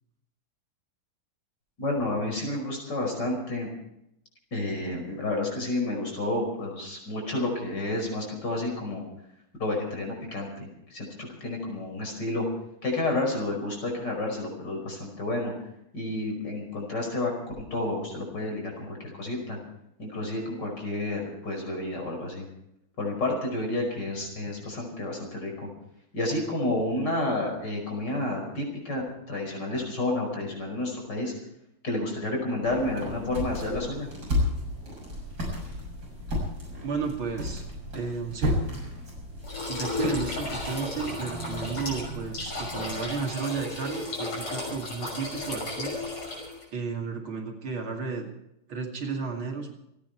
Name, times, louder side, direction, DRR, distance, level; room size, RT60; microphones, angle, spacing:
voice 1, 1.8-3.7 4.5-9.0 9.6-11.1 11.4-12.5 12.8-15.5 15.9-17.3 17.6-19.6 20.0-22.4 23.0-25.7 26.1-31.3 31.8-34.1, left 2 dB, 50° left, 1 dB, 5.8 m, -30 dB
sound 1, 32.6-43.1, left 1 dB, 45° right, 7.5 m, -34 dB
voice 2, 36.8-37.6 37.9-38.6 39.7-45.9 46.7-48.3 48.7-49.7, right 5 dB, 65° right, 2 dB, 3.3 m, -33 dB
sound 2, 39.4-46.6, left 3 dB, 80° left, 7.1 m, -34 dB
28.5 x 9.8 x 4.6 m, 0.81 s
omnidirectional pair, 2.4 m